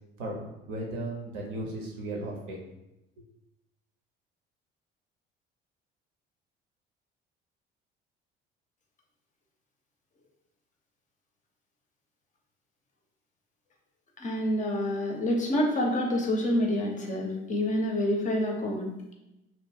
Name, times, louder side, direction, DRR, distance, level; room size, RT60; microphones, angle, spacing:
voice 1, 0.2-2.6 3.2-3.3, right 1 dB, 65° right, -1 dB, 0.7 m, -36 dB
voice 2, 14.2-19.1, left 1 dB, 25° left, 1 dB, 0.5 m, -28 dB
2.5 x 2.0 x 3.3 m, 0.93 s
figure-of-eight pair, 55°, 29 cm